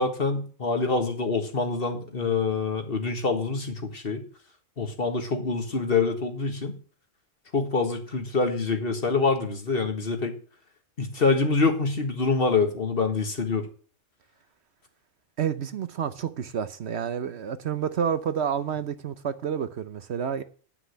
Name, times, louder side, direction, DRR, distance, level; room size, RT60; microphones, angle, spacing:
voice 1, 0.0-4.2 4.8-6.7 7.5-10.4 11.0-13.7, left 4 dB, 45° left, 1.8 m, -25 dB
voice 2, 15.4-20.4, right 8 dB, 60° right, 1.0 m, -29 dB
9.7 x 6.1 x 8.0 m
omnidirectional pair, 1.3 m